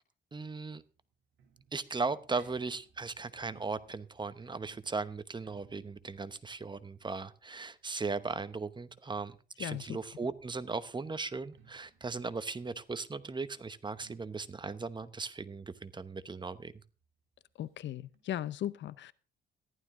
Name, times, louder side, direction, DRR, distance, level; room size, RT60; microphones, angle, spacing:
voice 1, 0.3-0.8 1.7-16.7, right 4 dB, 25° right, 14 dB, 0.9 m, -37 dB
sound 1, 0.7-8.2 9.4-16.8 17.0-17.1 17.4-17.5 18.1-18.2, right 6 dB, 75° right, 3.2 m, -65 dB
voice 2, 9.6-10.0 17.6-19.1, left 12 dB, 65° left, 18 dB, 0.7 m, -37 dB
14.5 x 11.5 x 3.7 m, 0.35 s
cardioid pair, 90°, 20 cm